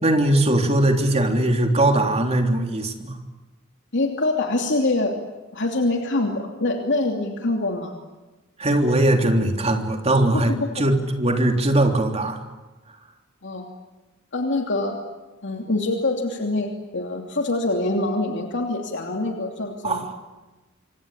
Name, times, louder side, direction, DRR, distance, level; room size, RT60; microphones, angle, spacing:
voice 1, 0.0-3.2 8.6-12.4 19.8-20.1, right 1 dB, 30° right, 4 dB, 3.4 m, -20 dB
voice 2, 3.9-5.1 5.5-7.9 10.3-10.8 13.4-13.7 14.3-15.0 15.4-20.1, left 2 dB, 60° left, 2 dB, 2.9 m, -25 dB
27.0 x 25.0 x 8.8 m, 1.2 s
head